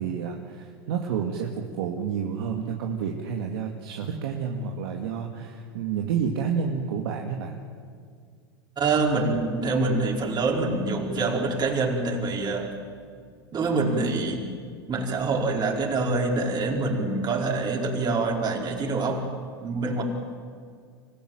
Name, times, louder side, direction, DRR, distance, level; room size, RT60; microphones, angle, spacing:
voice 1, 0.0-7.6, right 7 dB, 70° right, 1 dB, 2.2 m, -30 dB
voice 2, 8.8-12.8 13.5-14.5 14.9-19.3 19.6-20.0, right 3 dB, 35° right, 1 dB, 4.8 m, -25 dB
26.5 x 15.0 x 9.1 m, 2.1 s
hypercardioid pair, 95°, 13 cm